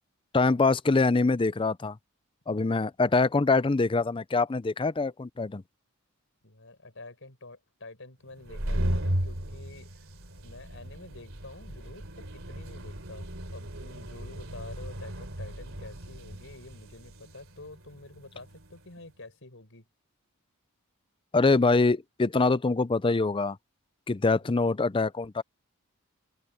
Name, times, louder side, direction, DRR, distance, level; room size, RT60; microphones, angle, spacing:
voice 1, 0.3-2.0 2.5-5.6 21.3-23.6 24.1-25.4, left 3 dB, 25° left, 0.5 m, -24 dB
voice 2, 6.4-10.1 10.4-19.9 24.2-24.5, left 2 dB, 60° left, 6.3 m, -48 dB
sound 1, 8.3-18.8, equal, 65° right, 3.6 m, -36 dB
open air
head